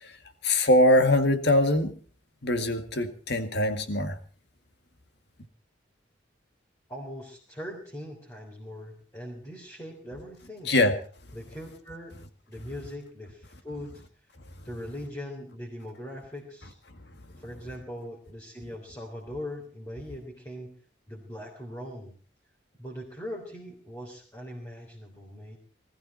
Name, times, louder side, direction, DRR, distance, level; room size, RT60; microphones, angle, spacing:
voice 1, 0.4-1.9 2.4-4.2 10.7-10.9, left 1 dB, 60° left, 1.9 m, -22 dB
voice 2, 6.9-10.7 11.3-12.1 12.5-14.0 14.6-16.7 17.4-20.7 21.1-22.1 22.8-25.6, equal, 15° left, 3.7 m, -40 dB
20.0 x 15.0 x 4.4 m
head